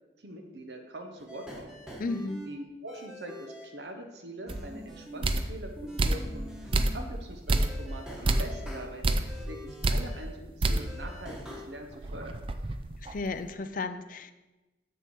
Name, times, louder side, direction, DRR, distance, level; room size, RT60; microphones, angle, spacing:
voice 1, 0.2-1.7 2.5-12.4, right 1 dB, 65° right, 3 dB, 1.0 m, -43 dB
sound 1, 1.2-2.5 2.9-3.7 4.5-5.5 5.8-7.1 7.5-10.3 10.7-11.7, equal, 5° right, 1.3 m, -44 dB
voice 2, 2.0-2.4 13.0-14.3, left 3 dB, 45° left, 10 dB, 0.5 m, -34 dB
sound 2, 4.5-4.6 5.2-5.6 6.0-6.3 6.7-7.1 7.5-7.8 8.2-8.6 9.0-9.4 9.8-10.1 10.6-10.9 11.3-11.4 11.9-13.4, right 2 dB, 30° right, 0.4 m, -28 dB
7.6 x 6.7 x 4.6 m, 1.1 s
head